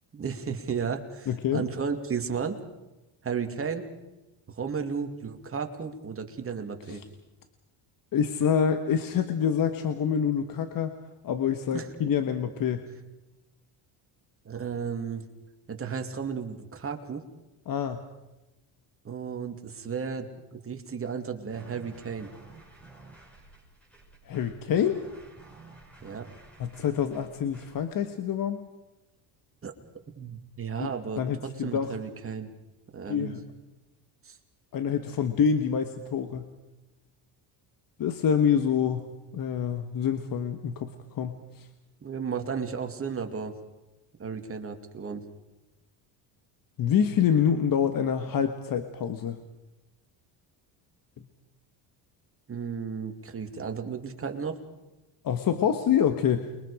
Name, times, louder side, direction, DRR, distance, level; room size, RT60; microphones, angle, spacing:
voice 1, 0.1-2.6 3.2-3.9 4.5-7.0 11.7-11.9 14.4-15.2 15.7-17.2 19.0-22.3 26.0-26.3 29.6-29.7 30.2-32.5 32.9-33.4 34.2-34.4 42.0-43.6 44.2-45.2 52.5-54.6, right 6 dB, 30° right, 4 dB, 2.6 m, -34 dB
voice 2, 1.3-1.6 6.9-7.0 8.1-10.9 11.2-12.9 17.7-18.0 24.3-25.0 26.6-28.6 30.8-30.9 31.2-31.9 33.1-33.4 34.7-36.5 38.0-41.7 46.8-49.4 55.2-56.5, left 8 dB, 50° left, 8 dB, 1.5 m, -26 dB
sound 1, 21.5-27.9, right 2 dB, 5° left, 5.8 m, -52 dB
29.0 x 23.0 x 5.0 m, 1.0 s
cardioid pair, 110°, 45 cm